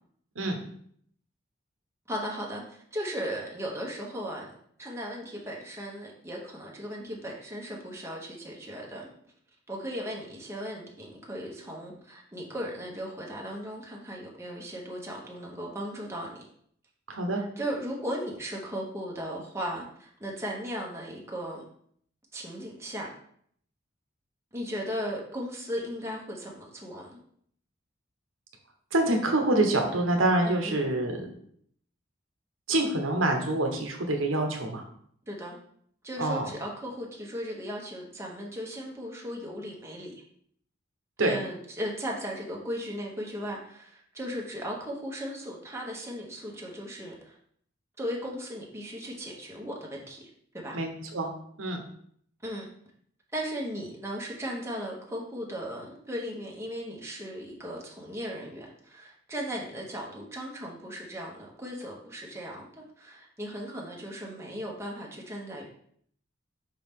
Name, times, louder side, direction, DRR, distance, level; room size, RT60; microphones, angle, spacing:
voice 1, 2.1-4.5 4.8-9.1 9.7-16.4 17.6-21.7 22.3-23.1 24.5-27.2 30.4-30.9 35.3-35.6 36.0-40.1 41.2-47.4 48.0-50.8 52.4-52.7 53.3-62.7 63.0-65.7, equal, 15° right, -2 dB, 1.0 m, -37 dB
voice 2, 17.1-17.4 28.9-31.3 32.7-34.8 36.2-36.5 41.2-41.4 50.7-51.3 51.6-51.8, right 2 dB, 90° right, 3 dB, 1.0 m, -26 dB
5.5 x 4.6 x 3.6 m, 0.64 s
head